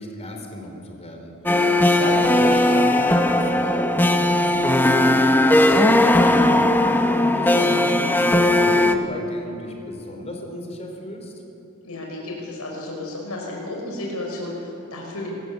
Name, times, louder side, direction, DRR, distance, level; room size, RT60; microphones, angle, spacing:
voice 1, 0.0-1.3 1.8-6.5 7.2-11.3, left 1 dB, 30° left, 2 dB, 3.8 m, -33 dB
sound 1, 1.5-9.0, left 1 dB, 10° left, 1.0 m, -18 dB
voice 2, 11.8-15.3, left 2 dB, 80° left, -1 dB, 5.6 m, -33 dB
25.5 x 15.5 x 8.3 m, 2.9 s
head